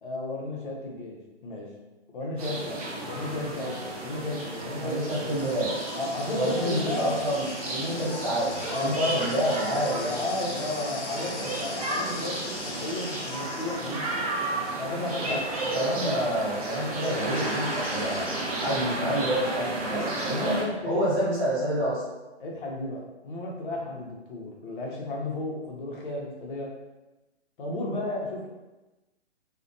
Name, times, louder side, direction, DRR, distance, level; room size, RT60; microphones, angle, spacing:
voice 1, 0.0-1.7 2.1-5.4 5.9-7.2 8.7-9.3 9.8-14.1 14.7-15.4 19.9-21.1 22.4-26.7 27.6-28.5, left 2 dB, 45° left, -2 dB, 0.7 m, -33 dB
sound 1, 2.4-20.6, right 2 dB, 35° right, 0.4 m, -33 dB
sound 2, 3.6-3.8 4.3-14.7 15.4-15.5 16.1-18.3, left 4 dB, 90° left, 0.5 m, -42 dB
voice 2, 4.8-5.7 6.3-10.2 15.3-15.4 15.7-18.3 18.6-20.6 20.8-22.0, equal, 20° right, -10 dB, 0.8 m, -28 dB
2.4 x 2.1 x 2.6 m, 1.1 s
hypercardioid pair, 145°, 35 cm